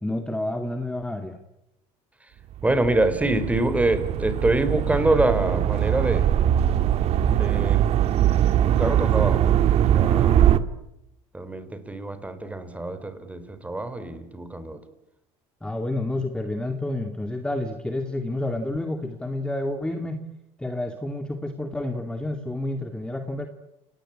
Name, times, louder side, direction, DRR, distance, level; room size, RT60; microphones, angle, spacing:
voice 1, 0.0-1.4 15.6-20.2 20.6-23.5, left 1 dB, 5° left, 5 dB, 2.3 m, -29 dB
voice 2, 2.6-6.3 7.3-7.9 8.6-9.6 9.8-10.5 11.3-14.8, right 2 dB, 10° right, 11 dB, 4.0 m, -25 dB
sound 1, 2.6-10.6, right 10 dB, 55° right, 1.6 m, -21 dB
29.5 x 19.0 x 8.7 m, 0.87 s
supercardioid pair, 115°, 13 cm